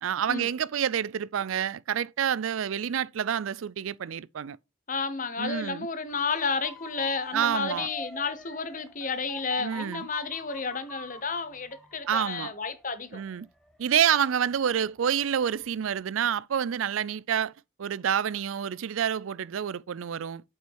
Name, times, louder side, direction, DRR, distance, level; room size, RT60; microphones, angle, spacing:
voice 1, 0.0-4.6 5.4-5.9 7.3-7.9 9.6-10.1 12.1-12.5 13.1-13.5 13.8-17.5 17.8-20.4, right 8 dB, 90° right, 0.4 m, -28 dB
voice 2, 4.9-13.2, left 4 dB, 40° left, 1.0 m, -31 dB
Motor vehicle (road) / Siren, 6.1-15.0 15.4-15.9, equal, ahead, 1.4 m, -46 dB
7.6 x 5.6 x 4.7 m
head